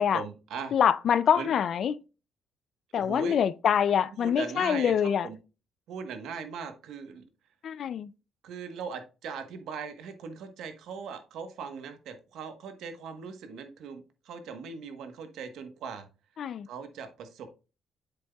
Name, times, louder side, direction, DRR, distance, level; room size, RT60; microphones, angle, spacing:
voice 1, 0.0-0.7 1.4-1.5 2.9-3.4 4.2-5.4 5.9-7.2 8.4-16.1 16.7-17.5, right 6 dB, 80° right, 1.2 m, -39 dB
voice 2, 0.7-1.9 2.9-5.3 7.6-8.1 16.4-16.7, left 8 dB, 60° left, 0.4 m, -25 dB
7.7 x 6.8 x 2.3 m
cardioid pair, 90°, 0 cm